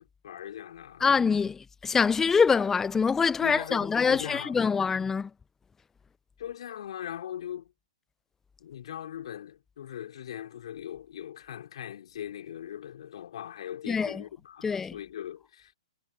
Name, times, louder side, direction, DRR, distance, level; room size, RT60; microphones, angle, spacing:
voice 1, 0.0-1.1 3.4-4.7 6.4-7.7 8.6-15.7, left 10 dB, 60° left, 3.6 m, -40 dB
voice 2, 1.0-5.3 13.9-14.2 14.6-14.9, left 5 dB, 10° left, 0.6 m, -25 dB
hypercardioid pair, 125°, 3 cm